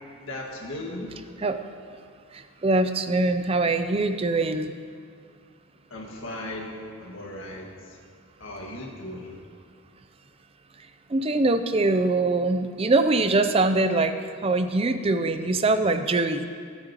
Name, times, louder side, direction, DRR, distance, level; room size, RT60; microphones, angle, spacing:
voice 1, 0.2-1.2 5.9-8.0 8.4-9.4, left 1 dB, 65° left, -1 dB, 1.8 m, -37 dB
voice 2, 2.3-4.8 10.8-14.2 14.4-16.5, right 2 dB, 25° right, 9 dB, 0.5 m, -23 dB
18.5 x 9.0 x 3.0 m, 2.1 s
head